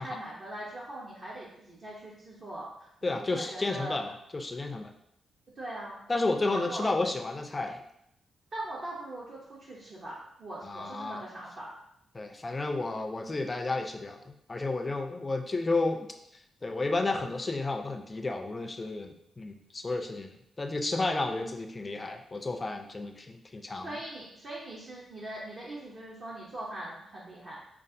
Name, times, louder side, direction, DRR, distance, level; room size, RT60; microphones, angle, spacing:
voice 1, 0.0-4.0 5.6-6.0 6.5-6.9 8.5-11.7 23.8-27.6, right 1 dB, 45° right, -6 dB, 0.7 m, -41 dB
voice 2, 3.0-4.9 6.1-7.8 10.6-11.2 12.1-16.1 16.6-20.3 20.6-24.0, left 2 dB, 25° left, 4 dB, 0.4 m, -32 dB
5.0 x 2.4 x 2.6 m, 0.78 s
wide cardioid pair, 130°, 0 cm